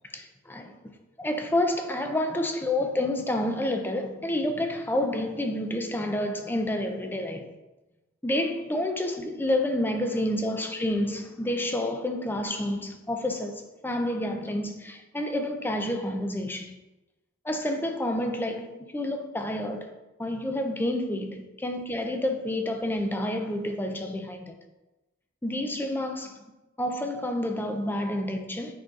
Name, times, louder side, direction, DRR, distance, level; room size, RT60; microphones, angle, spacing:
voice 1, 0.1-0.8 1.2-7.5 8.2-16.8 17.4-19.9 20.2-24.5 25.4-26.4 26.8-28.7, left 1 dB, 10° left, 0.5 m, -29 dB
7.5 x 5.4 x 2.4 m
head